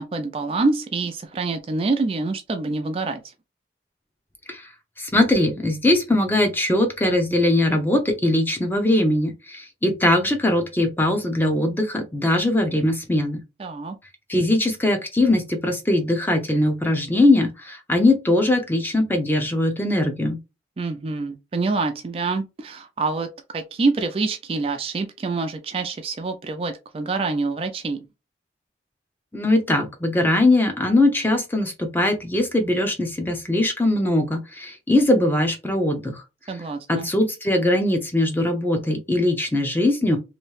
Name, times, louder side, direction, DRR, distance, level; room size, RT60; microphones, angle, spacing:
voice 1, 0.0-3.3 13.6-14.0 20.8-28.0 36.5-37.1, right 3 dB, 30° right, 0.3 m, -26 dB
voice 2, 5.0-13.4 14.3-20.4 29.3-36.1 36.9-40.2, left 1 dB, 10° left, 0.6 m, -21 dB
3.0 x 2.7 x 3.1 m
head